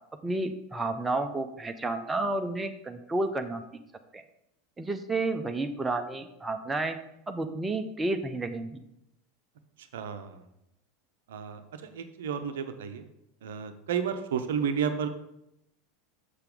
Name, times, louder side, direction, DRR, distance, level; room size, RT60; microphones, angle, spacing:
voice 1, 0.2-3.6 4.1-4.2 4.8-7.0 7.3-8.8, right 2 dB, 10° right, 6 dB, 0.6 m, -31 dB
voice 2, 9.9-10.4 11.3-13.0 13.4-15.1, right 7 dB, 65° right, 8 dB, 0.6 m, -32 dB
6.8 x 6.7 x 3.7 m, 0.81 s
figure-of-eight pair, 80°, 0 cm